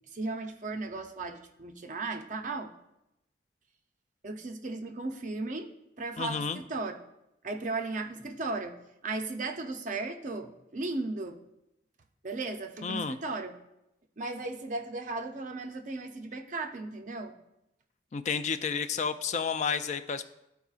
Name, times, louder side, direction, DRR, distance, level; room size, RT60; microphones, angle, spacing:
voice 1, 0.1-2.7 4.2-5.7 6.0-6.9 7.4-8.7 9.0-11.4 12.2-13.5 14.2-17.3, right 3 dB, 45° right, 5 dB, 0.6 m, -36 dB
voice 2, 6.2-6.6 12.8-13.2 18.1-20.2, left 6 dB, 40° left, 11 dB, 0.3 m, -31 dB
12.5 x 4.6 x 2.4 m, 0.87 s
head